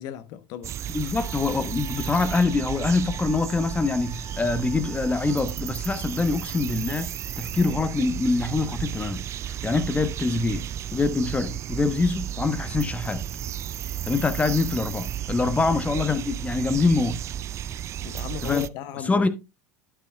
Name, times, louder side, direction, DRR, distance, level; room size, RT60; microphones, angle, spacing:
voice 1, 0.0-0.8 18.0-19.3, left 11 dB, 55° left, 1.0 m, -36 dB
sound 1, 0.6-18.7, right 10 dB, 35° right, 0.4 m, -33 dB
voice 2, 0.9-10.6 10.9-13.2 14.0-17.2 18.4-18.7 19.1-19.3, left 3 dB, 15° left, 1.1 m, -25 dB
Wind instrument woodwind instrument, 1.2-5.5, left 2 dB, 5° right, 2.6 m, -47 dB
11.5 x 7.4 x 2.3 m
hypercardioid pair, 75°, 8 cm